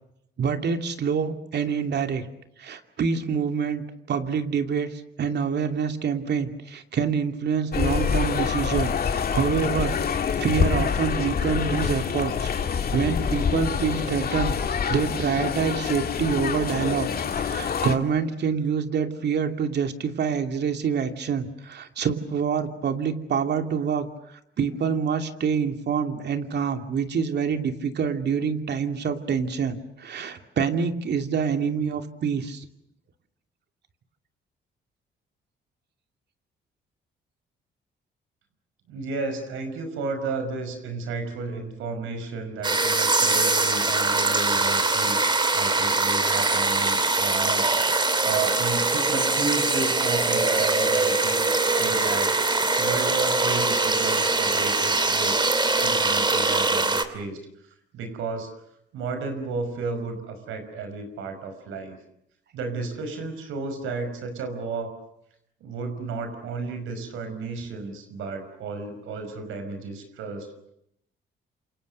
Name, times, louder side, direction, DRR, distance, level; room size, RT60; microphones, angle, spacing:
voice 1, 0.4-2.2 2.6-3.8 4.1-4.9 5.2-9.9 10.4-14.6 14.9-17.1 17.4-24.1 24.6-32.7, right 6 dB, 60° right, 6 dB, 2.7 m, -26 dB
sound 1, 7.7-18.0, left 6 dB, 50° left, 2.3 m, -26 dB
voice 2, 38.9-45.2 45.5-47.7 48.0-52.3 52.8-55.4 55.8-57.4 57.9-58.5 58.9-62.0 62.5-64.9 65.6-70.5, right 4 dB, 85° right, 7 dB, 5.5 m, -32 dB
sound 2, 42.6-57.1, right 3 dB, 25° right, 2.7 m, -22 dB
28.0 x 27.0 x 6.8 m, 0.77 s
cardioid pair, 90°, 20 cm